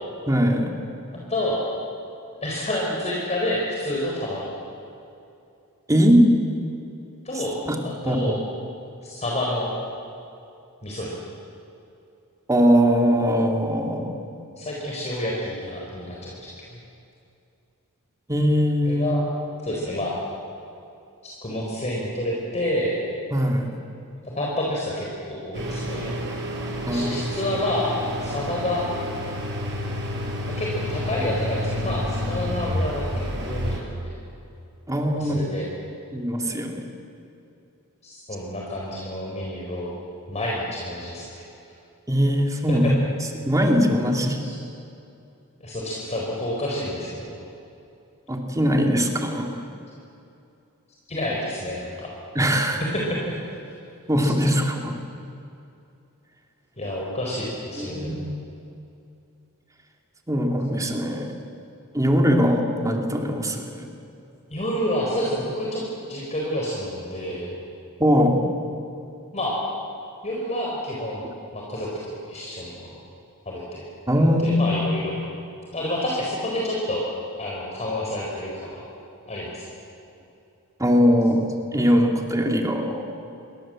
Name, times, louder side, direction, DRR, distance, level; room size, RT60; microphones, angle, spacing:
voice 1, 0.3-0.7 5.9-6.3 7.7-7.8 8.0-8.3 12.5-14.2 18.3-19.1 23.3-23.7 26.9-27.2 34.9-35.4 36.1-36.8 42.1-42.8 43.4-44.4 48.3-49.6 52.3-52.8 54.1-55.0 57.8-58.3 60.3-61.3 61.9-63.9 68.0-68.4 74.1-74.6 80.8-81.4 81.7-83.1, equal, 15° right, 2 dB, 2.8 m, -21 dB
voice 2, 1.3-1.6 2.4-4.5 7.2-7.5 7.8-8.4 9.0-9.7 10.8-11.1 14.6-16.8 18.8-19.2 19.6-20.2 21.2-22.9 24.2-26.2 26.9-27.9 28.2-28.8 30.5-34.1 35.1-35.7 38.0-39.9 40.3-41.4 42.7-42.9 44.4-44.6 45.6-47.4 51.1-52.1 52.8-53.4 56.8-58.2 64.5-65.8 66.1-67.6 69.3-69.6 70.2-71.3 71.5-72.9 73.5-73.8 74.4-75.2 75.7-77.0 77.4-78.8 79.3-79.6, left 1 dB, 30° left, -3 dB, 4.3 m, -29 dB
sound 1, 25.5-33.8, equal, 55° right, 5.6 m, -29 dB
28.5 x 22.5 x 7.7 m, 2.6 s
head